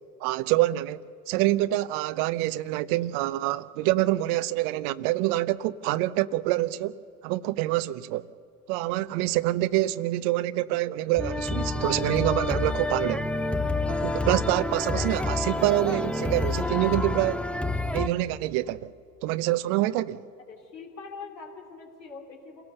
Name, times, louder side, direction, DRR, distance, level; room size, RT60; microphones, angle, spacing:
voice 1, 0.2-8.3 8.7-13.2 13.9-17.4 17.9-18.9 19.2-20.2, right 16 dB, 60° right, 0.9 m, -26 dB
sound 1, 11.2-18.1, left 2 dB, ahead, 0.9 m, -28 dB
voice 2, 20.5-22.6, left 5 dB, 85° left, 3.4 m, -42 dB
28.5 x 17.5 x 6.9 m
hypercardioid pair, 65°, 48 cm